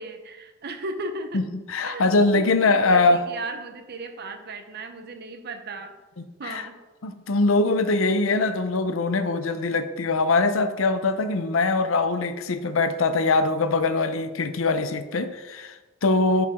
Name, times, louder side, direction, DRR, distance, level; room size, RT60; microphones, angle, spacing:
voice 1, 0.0-1.5 1.8-2.1 2.3-6.0 6.4-6.8 8.0-8.2, right 2 dB, 55° right, 7 dB, 0.8 m, -36 dB
voice 2, 1.7-3.2 6.4-6.6 7.0-16.5, left 3 dB, 90° left, 10 dB, 0.7 m, -22 dB
11.0 x 4.8 x 3.6 m, 1.2 s
head